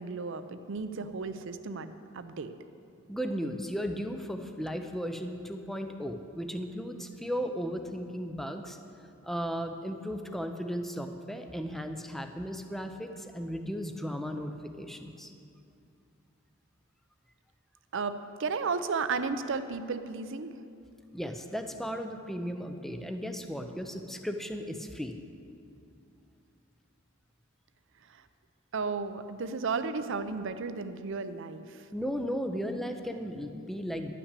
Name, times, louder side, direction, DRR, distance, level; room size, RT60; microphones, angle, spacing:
voice 1, 0.0-2.5 17.9-20.5 28.1-28.2 28.7-31.9, right 4 dB, 60° right, 10 dB, 0.6 m, -34 dB
voice 2, 3.1-8.8 9.2-15.3 21.1-25.2 31.9-34.1, equal, ahead, 6 dB, 0.6 m, -35 dB
11.5 x 5.9 x 8.2 m, 2.5 s
head